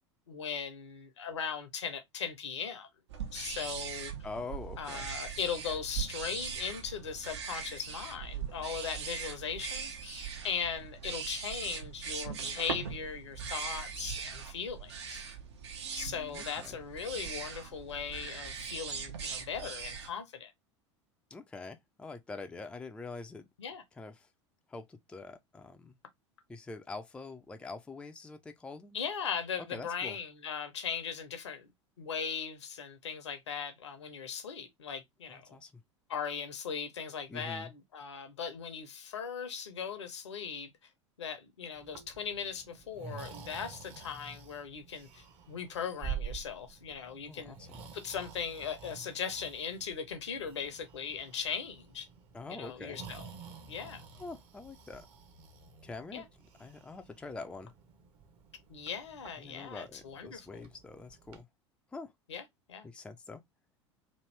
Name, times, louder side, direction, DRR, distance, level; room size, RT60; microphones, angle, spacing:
voice 1, 0.3-2.9 3.3-4.1 4.8-15.2 15.9-20.5 23.6-23.8 28.9-31.7 32.0-35.6 36.1-40.9 41.2-47.6 47.9-52.1 52.5-53.2 53.7-54.0 56.1-56.2 58.7-60.6 62.3-62.9, left 6 dB, 70° left, 0.8 m, -39 dB
sound 1, 3.1-20.1, right 6 dB, 65° right, 0.8 m, -40 dB
voice 2, 4.2-5.1 16.3-16.8 21.3-23.5 24.0-24.3 24.7-26.0 26.5-29.0 29.7-30.2 35.3-35.7 37.3-37.7 47.2-47.8 52.3-53.0 54.2-55.1 55.8-56.2 56.6-57.7 59.4-61.5 61.9-62.1 62.8-63.4, left 3 dB, 5° left, 0.4 m, -45 dB
Breathing, 41.7-61.4, right 7 dB, 40° right, 0.8 m, -48 dB
3.1 x 2.5 x 3.1 m
figure-of-eight pair, 80°, 15 cm